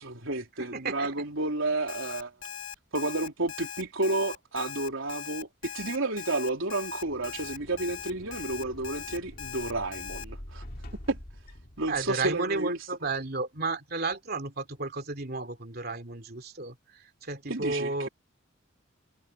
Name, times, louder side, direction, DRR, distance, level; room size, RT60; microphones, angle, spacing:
voice 1, 0.0-2.3 2.9-10.6 11.1-11.2 11.8-12.9 17.5-18.1, right 2 dB, 75° right, 3.6 m, -31 dB
voice 2, 0.6-1.1 11.9-16.7 17.2-18.1, right 3 dB, 50° right, 2.9 m, -32 dB
Alarm, 1.9-10.2, left 9 dB, 70° left, 2.1 m, -40 dB
sound 1, 6.8-12.4, left 1 dB, 45° left, 2.3 m, -46 dB
head